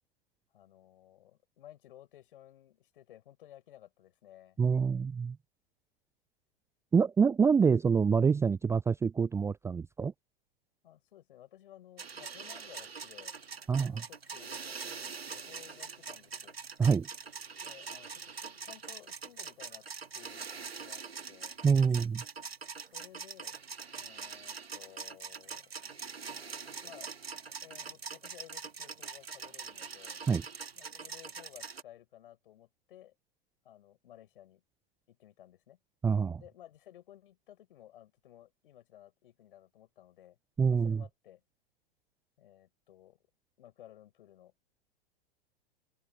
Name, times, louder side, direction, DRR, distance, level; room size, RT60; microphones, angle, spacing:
voice 1, 0.5-4.6 10.8-13.3 13.8-16.6 17.6-19.9 20.1-21.6 22.9-23.6 23.9-25.7 26.8-27.1 27.6-30.2 30.7-33.1 33.6-34.6 35.1-35.8 36.4-40.4 40.7-41.4 42.4-43.2 43.6-44.5, left 12 dB, 60° left, 7.6 m, -56 dB
voice 2, 4.6-5.4 6.9-10.1 13.7-14.0 16.8-17.1 21.6-22.2 30.3-30.4 36.0-36.4 40.6-41.0, right 6 dB, 10° right, 0.5 m, -26 dB
sound 1, 12.0-31.8, right 5 dB, 80° right, 2.0 m, -43 dB
open air
figure-of-eight pair, 95°, 30 cm